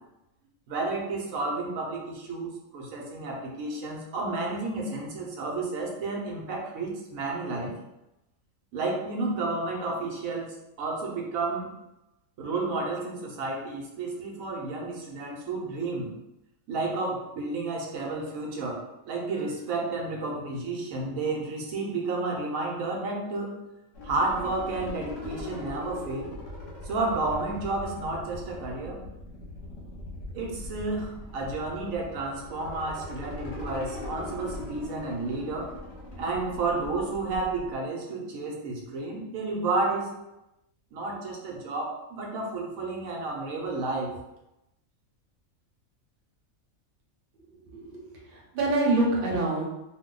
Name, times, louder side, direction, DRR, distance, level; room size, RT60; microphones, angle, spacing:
voice 1, 0.7-7.7 8.7-11.7 12.4-16.1 16.7-23.6 24.0-26.3 26.8-29.0 30.3-35.7 36.2-40.1 40.9-44.1, right 3 dB, 80° right, 0 dB, 1.1 m, -31 dB
sound 1, 23.9-37.7, left 2 dB, 55° left, 0.9 m, -40 dB
voice 2, 48.3-49.7, right 2 dB, 50° right, -3 dB, 0.8 m, -25 dB
2.6 x 2.2 x 3.7 m, 0.90 s
omnidirectional pair, 1.4 m